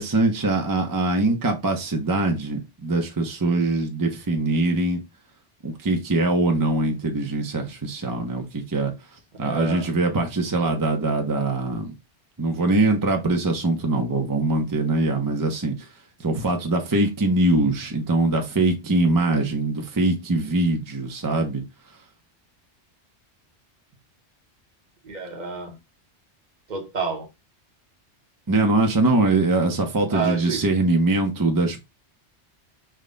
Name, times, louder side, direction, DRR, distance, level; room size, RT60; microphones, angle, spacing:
voice 1, 0.0-5.0 5.6-8.9 9.4-11.9 12.4-15.7 16.2-21.6 28.5-31.8, right 2 dB, 30° right, 0.4 m, -22 dB
voice 2, 9.4-9.9 19.4-19.5 25.0-25.8 26.7-27.3 30.1-30.6, right 5 dB, 45° right, 0.8 m, -29 dB
3.5 x 2.1 x 3.7 m
omnidirectional pair, 1.2 m